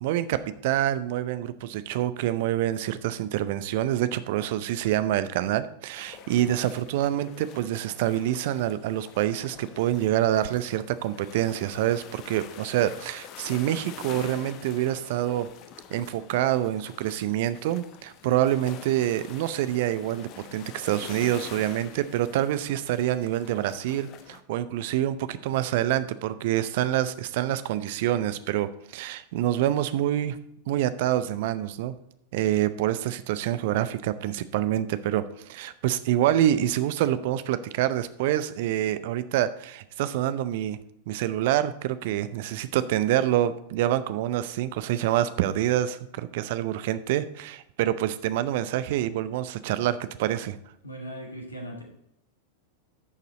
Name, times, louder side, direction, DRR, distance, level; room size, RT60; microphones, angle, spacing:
voice 1, 0.0-15.5 15.9-30.4 30.7-31.9 32.3-40.8 41.1-50.6, right 12 dB, 50° right, 14 dB, 0.6 m, -26 dB
sound 1, 6.0-24.4, left 9 dB, 40° left, 0.8 m, -46 dB
voice 2, 50.8-51.8, equal, 80° left, 0 dB, 2.3 m, -38 dB
11.0 x 6.7 x 4.0 m, 0.79 s
figure-of-eight pair, 90°, 0 cm